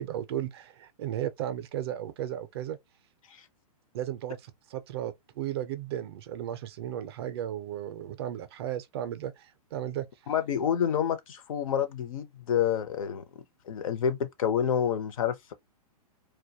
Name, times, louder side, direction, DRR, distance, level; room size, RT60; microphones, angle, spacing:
voice 1, 0.0-2.8 3.9-10.1, right 11 dB, 40° right, 0.4 m, -35 dB
voice 2, 10.3-13.2 13.7-15.5, left 8 dB, 60° left, 0.6 m, -28 dB
2.2 x 2.1 x 2.6 m
hypercardioid pair, 145°, 19 cm